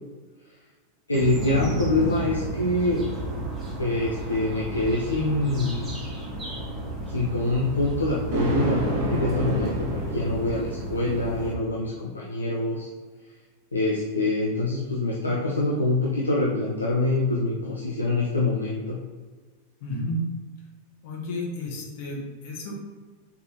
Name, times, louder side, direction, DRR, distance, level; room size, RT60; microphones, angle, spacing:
voice 1, 1.1-3.0 3.8-5.8 7.1-12.9 13.7-19.0, left 2 dB, 80° left, -4 dB, 0.5 m, -25 dB
sound 1, 1.1-11.5, right 1 dB, 20° right, 1.2 m, -32 dB
Thunder, 8.3-10.8, right 1 dB, 45° right, 1.1 m, -28 dB
voice 2, 19.8-20.2 21.0-22.8, left 1 dB, 50° left, -2 dB, 1.0 m, -32 dB
4.1 x 3.5 x 2.7 m, 1.4 s
figure-of-eight pair, 90°, 0 cm